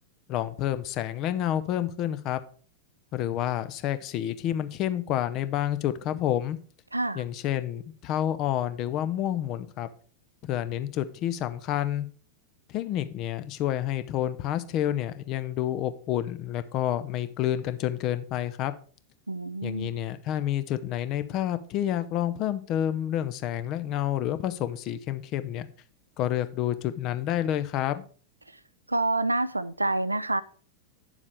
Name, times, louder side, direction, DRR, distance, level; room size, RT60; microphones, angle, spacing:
voice 1, 0.3-2.4 3.1-6.6 7.1-9.9 10.4-12.1 12.7-18.7 19.6-25.7 26.2-28.0, left 11 dB, 40° left, 0.7 m, -29 dB
voice 2, 6.9-7.2 19.3-19.9 28.9-30.4, right 2 dB, 85° right, 0.4 m, -27 dB
9.4 x 7.2 x 3.4 m
figure-of-eight pair, 90°, 0 cm